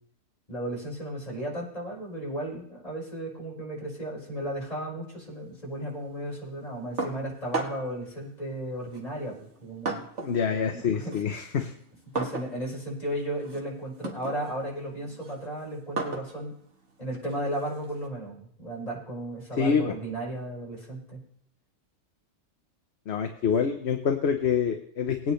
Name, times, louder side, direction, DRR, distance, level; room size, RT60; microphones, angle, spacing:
voice 1, 0.5-10.0 10.6-11.2 12.1-16.5 17.0-21.2, right 1 dB, 30° left, -5 dB, 5.0 m, -35 dB
sound 1, 7.0-8.0 8.9-10.4 10.8-18.1, right 3 dB, 55° right, 1.8 m, -37 dB
voice 2, 10.2-11.7 19.6-20.0 23.1-25.3, left 6 dB, 55° left, 5 dB, 1.0 m, -26 dB
20.5 x 9.2 x 3.2 m, 0.65 s
omnidirectional pair, 1.5 m